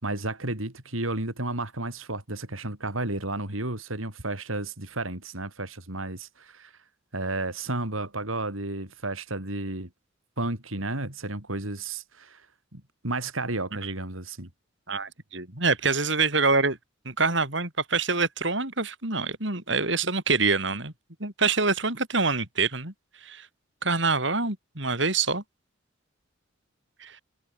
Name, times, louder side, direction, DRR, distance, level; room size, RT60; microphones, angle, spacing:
voice 1, 0.0-6.7 7.1-9.9 10.4-12.5 12.7-14.5, right 2 dB, 85° right, 5.1 m, -32 dB
voice 2, 14.9-16.8 17.1-20.9 21.2-22.9 23.2-23.5 23.8-25.4 27.0-27.2, right 4 dB, 60° right, 5.7 m, -25 dB
head